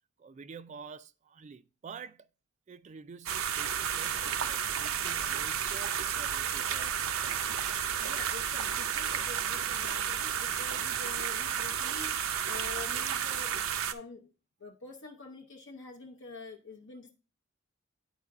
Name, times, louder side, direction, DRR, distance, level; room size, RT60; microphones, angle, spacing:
voice 1, 0.2-2.3 2.7-7.6, right 5 dB, 35° right, 0.3 m, -48 dB
sound 1, 3.3-13.9, right 8 dB, 80° right, 0.6 m, -32 dB
voice 2, 8.0-14.3 14.6-17.1, left 3 dB, 60° left, 0.7 m, -47 dB
9.6 x 4.7 x 3.4 m
head